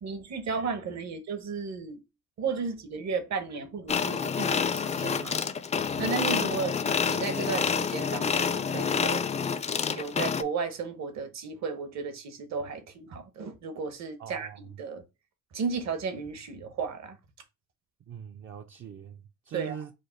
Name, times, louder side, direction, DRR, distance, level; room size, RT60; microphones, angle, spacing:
voice 1, 0.0-2.0 2.4-5.4 6.0-6.8 7.1-9.3 9.9-15.0 15.5-17.2 19.5-19.8, right 5 dB, 65° right, 1.0 m, -34 dB
sound 1, 3.9-10.4, left 6 dB, 25° left, 0.4 m, -28 dB
voice 2, 14.2-14.8 18.1-19.9, right 8 dB, 45° right, 0.4 m, -42 dB
5.0 x 2.2 x 4.3 m
cardioid pair, 90°, 30 cm